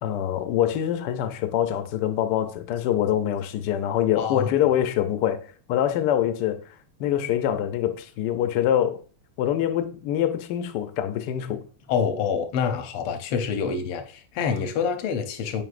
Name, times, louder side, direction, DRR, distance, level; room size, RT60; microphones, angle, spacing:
voice 1, 0.0-6.6 7.0-9.0 9.4-11.7, left 10 dB, 70° left, 1.0 m, -25 dB
voice 2, 4.2-4.5 11.9-15.6, left 6 dB, 90° left, 1.7 m, -26 dB
7.8 x 4.9 x 2.5 m
omnidirectional pair, 2.4 m